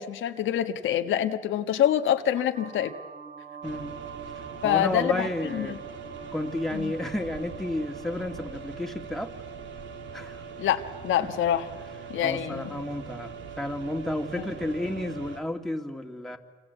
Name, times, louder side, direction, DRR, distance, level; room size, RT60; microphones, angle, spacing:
voice 1, 0.0-2.9 4.6-5.8 6.7-6.9 10.6-11.7 12.1-12.8 14.4-14.5, left 10 dB, 80° left, 7 dB, 1.4 m, -26 dB
sound 1, 2.5-8.5, right 6 dB, 40° right, 4.2 m, -45 dB
voice 2, 3.6-4.0 4.6-5.8 6.3-9.3 10.1-10.4 12.2-16.4, left 1 dB, ahead, 3 dB, 2.4 m, -32 dB
sound 2, 3.6-15.4, right 5 dB, 70° right, 2.9 m, -41 dB
26.5 x 26.5 x 8.3 m, 1.3 s
cardioid pair, 90°, 20 cm